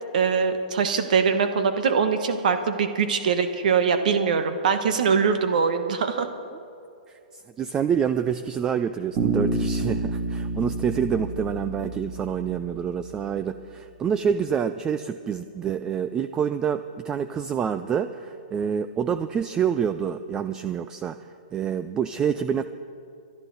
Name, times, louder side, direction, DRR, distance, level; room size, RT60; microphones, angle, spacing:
voice 1, 0.1-6.3, right 6 dB, 65° right, 8 dB, 1.0 m, -22 dB
voice 2, 7.1-21.2 21.5-22.6, right 7 dB, 15° right, 11 dB, 0.3 m, -27 dB
Bass guitar, 9.2-13.2, right 3 dB, 30° right, 2.4 m, -29 dB
21.5 x 12.0 x 4.0 m, 2.6 s
hypercardioid pair, 150°, 5 cm